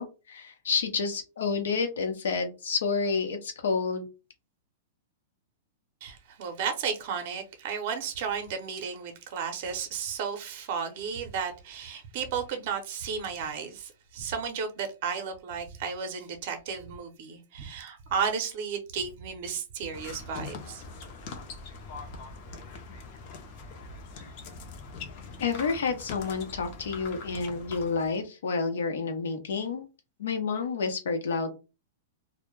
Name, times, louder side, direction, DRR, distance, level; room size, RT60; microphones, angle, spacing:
voice 1, 0.0-4.1 25.4-29.8 30.2-31.5, left 5 dB, 90° left, 0.7 m, -29 dB
voice 2, 6.0-20.8, right 6 dB, 50° right, 0.6 m, -33 dB
sound 1, 19.9-28.2, left 4 dB, 45° left, 0.5 m, -42 dB
2.1 x 2.1 x 3.1 m
supercardioid pair, 155°, 0 cm